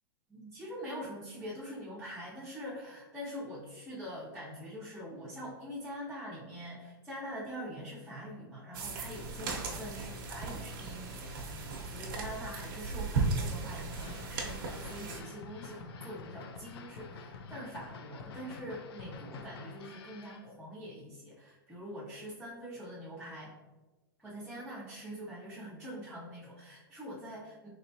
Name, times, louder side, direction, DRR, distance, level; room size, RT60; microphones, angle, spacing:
voice 1, 0.3-23.5 24.2-27.7, equal, ahead, -10 dB, 0.7 m, -44 dB
sound 1, 8.7-15.2, right 3 dB, 60° right, 0.8 m, -36 dB
sound 2, 13.9-20.4, left 4 dB, 85° left, 0.5 m, -48 dB
4.0 x 3.4 x 2.7 m, 1.2 s
supercardioid pair, 160°, 13 cm